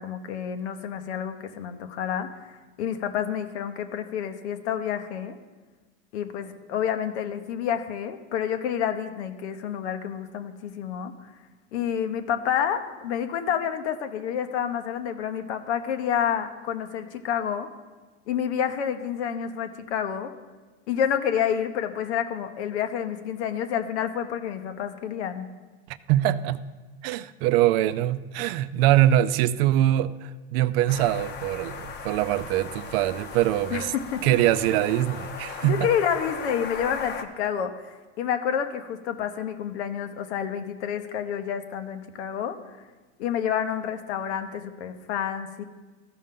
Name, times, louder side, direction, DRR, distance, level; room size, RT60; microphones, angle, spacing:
voice 1, 0.0-5.4 6.1-11.1 11.7-17.7 18.3-20.3 20.9-25.5 33.7-34.2 35.6-42.6 43.2-45.6, left 8 dB, 80° left, 0.9 m, -29 dB
voice 2, 26.1-26.6 27.0-33.9 34.2-35.9, right 13 dB, 60° right, 0.5 m, -23 dB
sound 1, 30.9-37.3, left 5 dB, 30° left, 0.8 m, -37 dB
14.5 x 5.5 x 3.7 m
supercardioid pair, 130°, 34 cm